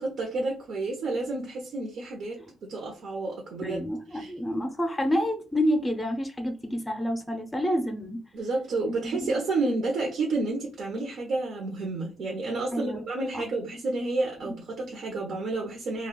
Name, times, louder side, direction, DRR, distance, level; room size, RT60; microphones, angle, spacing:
voice 1, 0.0-3.8 4.1-4.3 8.3-16.1, right 3 dB, 65° right, 0.8 m, -30 dB
voice 2, 3.6-8.2 8.9-9.0 9.2-9.3 12.7-13.0 13.3-13.4, equal, 10° left, 0.5 m, -28 dB
2.4 x 2.3 x 3.7 m
cardioid pair, 90°, 0 cm